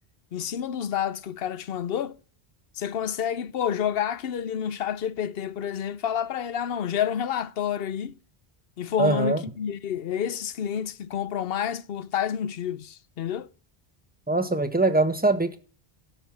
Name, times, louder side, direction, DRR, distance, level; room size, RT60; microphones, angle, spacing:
voice 1, 0.3-2.2 2.8-8.1 8.8-13.5, left 9 dB, 70° left, 0.9 m, -29 dB
voice 2, 9.0-9.4 14.3-15.6, right 2 dB, 10° right, 1.2 m, -22 dB
12.5 x 5.6 x 7.2 m
omnidirectional pair, 1.1 m